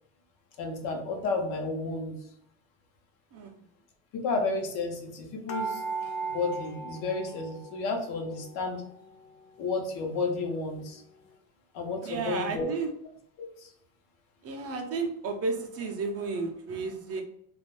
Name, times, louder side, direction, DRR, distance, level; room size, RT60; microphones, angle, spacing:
voice 1, 0.6-2.2 4.1-5.8 6.3-8.8 9.6-11.0 11.7-12.7 13.6-13.7, left 3 dB, 90° left, 2 dB, 0.8 m, -31 dB
sound 1, 5.5-8.0 8.3-9.3 9.8-9.9 10.1-10.3, right 4 dB, 55° left, 0.5 m, -37 dB
voice 2, 12.0-12.9 14.4-17.2, right 4 dB, 40° right, 3 dB, 0.4 m, -32 dB
2.3 x 2.1 x 3.0 m, 0.70 s
cardioid pair, 130°, 41 cm